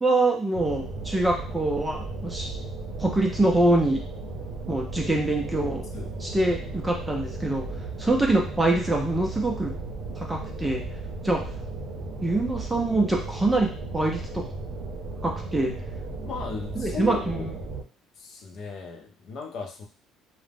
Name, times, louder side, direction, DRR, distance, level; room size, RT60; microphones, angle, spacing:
voice 1, 0.0-2.5 3.0-4.0 4.7-5.8 6.2-7.6 8.0-9.7 10.2-10.8 11.2-11.4 12.2-13.7 13.9-14.4 15.2-15.7 16.8-17.5, right 2 dB, 10° right, 0 dB, 0.5 m, -24 dB
sound 1, 0.5-17.8, right 2 dB, 70° right, 0.6 m, -35 dB
voice 2, 16.2-17.5 18.2-19.9, left 4 dB, 50° left, 3 dB, 0.5 m, -36 dB
2.4 x 2.0 x 3.3 m, 0.40 s
cardioid pair, 150°, 0 cm